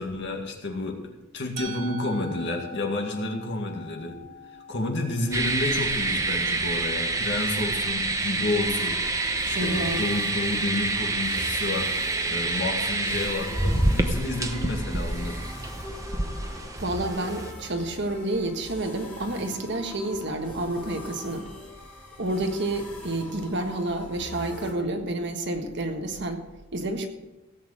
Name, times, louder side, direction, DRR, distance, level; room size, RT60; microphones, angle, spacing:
voice 1, 0.0-4.2 4.7-11.9 12.3-15.4, left 2 dB, 60° left, 2 dB, 2.2 m, -30 dB
Musical instrument, 1.6-7.5, left 1 dB, 85° right, 1.4 m, -44 dB
sound 1, 5.3-17.5, right 2 dB, 15° right, 0.9 m, -27 dB
sound 2, 8.6-24.7, left 1 dB, 10° left, 2.8 m, -43 dB
voice 2, 9.5-10.0 16.8-21.5 22.2-26.4 26.7-27.1, right 1 dB, 55° right, 5 dB, 1.5 m, -29 dB
17.0 x 8.3 x 5.0 m, 1.1 s
head